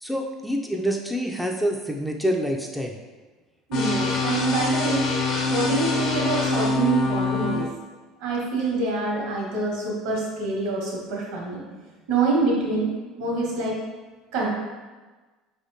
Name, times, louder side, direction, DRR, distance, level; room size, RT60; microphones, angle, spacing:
voice 1, 0.0-3.0, equal, ahead, 1 dB, 0.4 m, -26 dB
sound 1, 3.7-7.7, left 3 dB, 60° left, 0.9 m, -24 dB
voice 2, 3.7-5.1 5.5-7.7 8.2-11.6 12.1-12.9 13.2-13.8 14.3-14.5, right 3 dB, 80° right, -3 dB, 1.4 m, -25 dB
4.6 x 3.5 x 2.7 m, 1.3 s
supercardioid pair, 100°, 0 cm